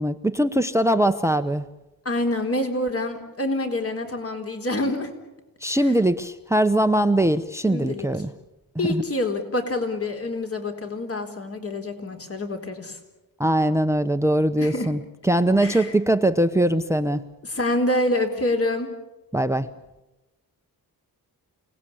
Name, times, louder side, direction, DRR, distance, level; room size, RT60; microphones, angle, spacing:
voice 1, 0.0-1.6 5.6-8.3 8.7-9.0 13.4-15.0 15.2-17.2 19.3-19.7, right 1 dB, 5° right, 13 dB, 0.9 m, -21 dB
voice 2, 2.0-5.1 5.8-5.9 7.7-8.1 8.8-13.0 14.6-14.9 15.6-15.9 17.4-18.9, left 1 dB, 40° left, 4 dB, 4.0 m, -26 dB
29.0 x 19.0 x 8.6 m, 1.0 s
wide cardioid pair, 115°, 37 cm